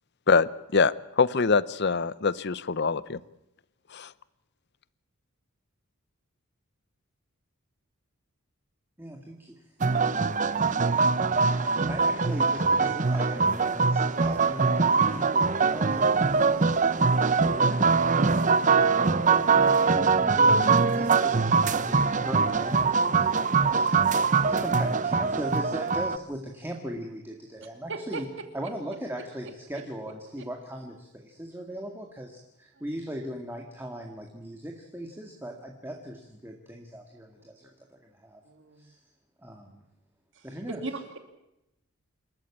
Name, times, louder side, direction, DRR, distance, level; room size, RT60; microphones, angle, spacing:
voice 1, 0.3-3.2 3.9-4.1, left 4 dB, 50° left, 18 dB, 0.7 m, -24 dB
voice 2, 9.0-9.6 11.3-17.9 18.6-28.3 28.5-38.4 38.8-39.0 39.4-39.8 40.4-40.8, equal, 10° right, 2 dB, 1.9 m, -39 dB
sound 1, 9.8-26.2, right 4 dB, 35° right, 0.7 m, -23 dB
voice 3, 27.9-28.2 29.7-29.8 30.4-30.5 37.4-37.5 38.4-38.9 40.3-41.2, right 3 dB, 55° right, 6 dB, 2.8 m, -38 dB
27.0 x 14.0 x 8.5 m, 0.88 s
head